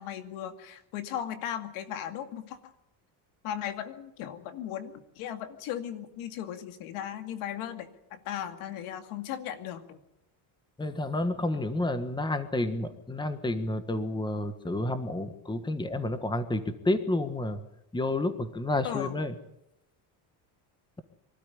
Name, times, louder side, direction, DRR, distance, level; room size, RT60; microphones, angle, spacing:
voice 1, 0.0-2.7 3.4-10.0 18.8-19.1, left 10 dB, 85° left, 7 dB, 2.4 m, -37 dB
voice 2, 10.8-17.6 17.9-19.3, left 2 dB, 10° left, 9 dB, 1.5 m, -30 dB
24.5 x 13.0 x 10.0 m, 0.86 s
cardioid pair, 140°, 50 cm